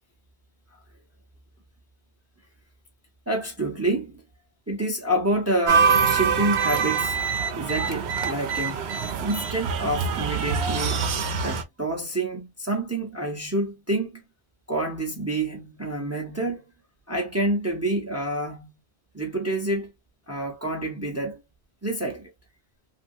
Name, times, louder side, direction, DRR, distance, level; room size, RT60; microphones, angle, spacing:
voice 1, 3.3-4.2 4.7-7.2 7.5-8.8 9.2-11.1 11.4-14.2 14.7-16.6 17.1-18.7 19.1-19.9 20.3-21.4 21.8-22.3, right 1 dB, 15° right, 0.7 m, -28 dB
sound 1, 5.7-11.6, right 6 dB, 80° right, 0.9 m, -24 dB
3.0 x 2.6 x 2.6 m
omnidirectional pair, 1.1 m